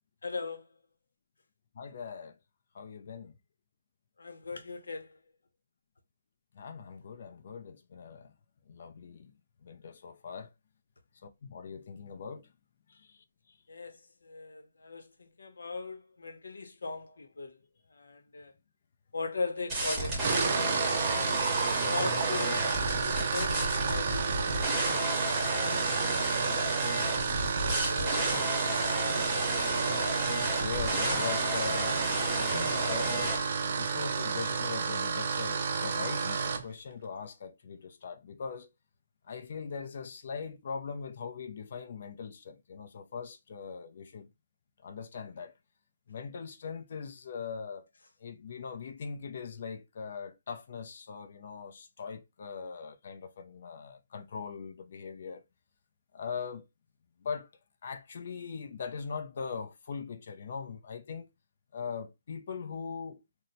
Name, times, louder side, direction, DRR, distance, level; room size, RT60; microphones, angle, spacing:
voice 1, 0.2-0.7 4.2-5.2 13.7-17.6 17.9-18.5 19.1-20.9 21.8-25.3 27.6-29.3, left 4 dB, 85° left, 0.8 m, -39 dB
voice 2, 1.7-2.4 2.7-3.3 6.5-8.3 8.7-9.3 9.6-10.5 11.2-12.5 12.9-13.1 25.9-26.4 30.4-32.0 32.3-38.7 39.3-44.3 44.8-45.5 46.1-47.9 48.2-55.4 56.1-56.6 57.2-57.5 57.8-61.3 61.7-63.2, left 6 dB, 40° left, 0.5 m, -41 dB
sound 1, 19.7-33.4, right 2 dB, 10° right, 0.9 m, -32 dB
sound 2, 20.1-36.7, right 5 dB, 35° right, 0.4 m, -31 dB
2.7 x 2.1 x 3.9 m
hypercardioid pair, 175°, 0 cm